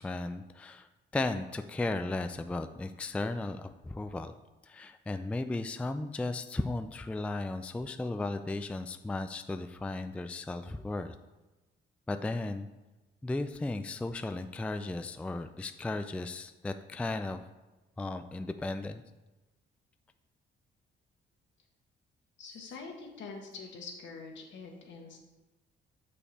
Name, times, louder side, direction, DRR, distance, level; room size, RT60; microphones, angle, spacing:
voice 1, 0.0-4.3 4.6-11.2 12.1-12.7 13.2-17.4 18.0-19.0, left 2 dB, 5° left, 9 dB, 0.3 m, -35 dB
voice 2, 22.4-25.2, left 4 dB, 70° left, 1 dB, 1.5 m, -45 dB
6.4 x 5.6 x 4.2 m, 1.1 s
cardioid pair, 90°, 20 cm